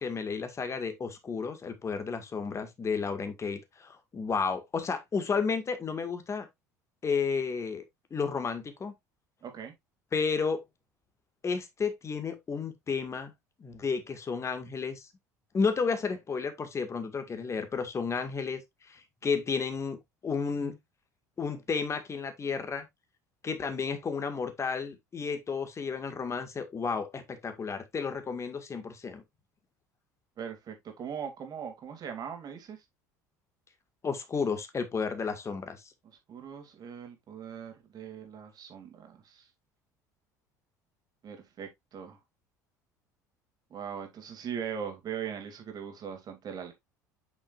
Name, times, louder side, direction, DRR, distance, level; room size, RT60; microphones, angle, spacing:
voice 1, 0.0-6.5 7.0-7.8 8.1-8.9 10.1-10.6 11.4-13.3 13.6-15.1 15.5-18.6 18.9-20.0 20.2-20.8 21.4-22.9 23.4-29.2 34.0-35.8, left 5 dB, 30° left, 2.0 m, -32 dB
voice 2, 9.4-9.7 30.4-32.8 36.3-39.5 41.2-42.2 43.7-46.7, right 7 dB, 45° right, 2.8 m, -40 dB
8.0 x 6.2 x 2.6 m
hypercardioid pair, 65°, 9 cm